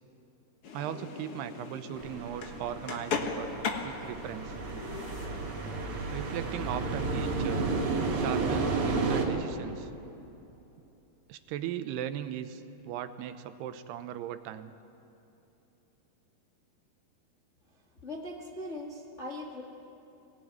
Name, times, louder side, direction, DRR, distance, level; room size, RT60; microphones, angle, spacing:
sound 1, 0.6-6.9, left 5 dB, 65° left, 1.4 m, -39 dB
voice 1, 0.7-4.5 6.1-7.7 8.1-9.9 11.3-14.7, right 10 dB, 80° right, 10 dB, 2.9 m, -38 dB
sound 2, 2.0-9.3, right 3 dB, 50° right, 3.9 m, -32 dB
voice 2, 18.0-19.6, left 1 dB, 80° left, -2 dB, 0.6 m, -40 dB
23.5 x 18.5 x 9.4 m, 2.9 s
omnidirectional pair, 4.8 m